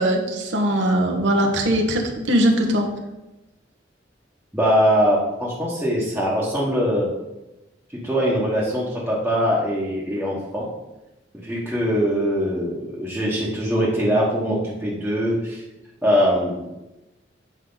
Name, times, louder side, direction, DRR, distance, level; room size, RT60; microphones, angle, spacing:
voice 1, 0.0-2.9, right 1 dB, 80° right, 2 dB, 1.1 m, -20 dB
voice 2, 4.5-7.1 8.0-10.7 11.4-15.6 16.0-16.8, equal, 5° right, -8 dB, 1.2 m, -22 dB
8.0 x 4.7 x 3.9 m, 0.98 s
head